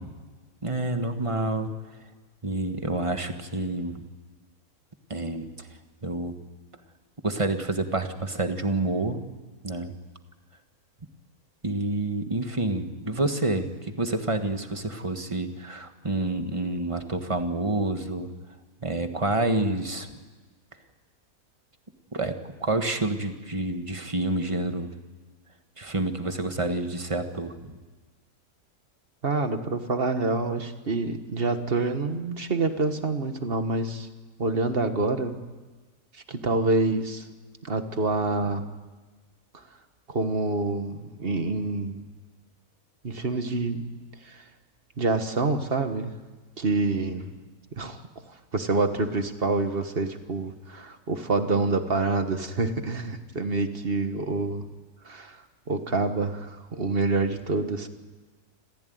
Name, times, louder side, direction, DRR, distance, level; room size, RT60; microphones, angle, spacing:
voice 1, 0.6-1.7 2.4-4.0 5.1-5.7 6.0-6.3 7.2-9.3 9.6-9.9 11.6-13.7 14.0-18.3 18.8-20.1 22.1-24.9 25.8-27.8, right 2 dB, 20° right, 7 dB, 1.5 m, -28 dB
voice 2, 29.2-34.1 34.4-35.4 36.1-37.3 37.6-38.6 40.1-42.0 43.0-44.0 44.3-44.4 45.0-46.1 46.6-47.4 47.8-48.0 48.5-54.7 55.1-55.4 55.7-57.9, right 3 dB, 40° right, 8 dB, 1.6 m, -27 dB
27.0 x 15.5 x 9.3 m, 1.3 s
omnidirectional pair, 1.6 m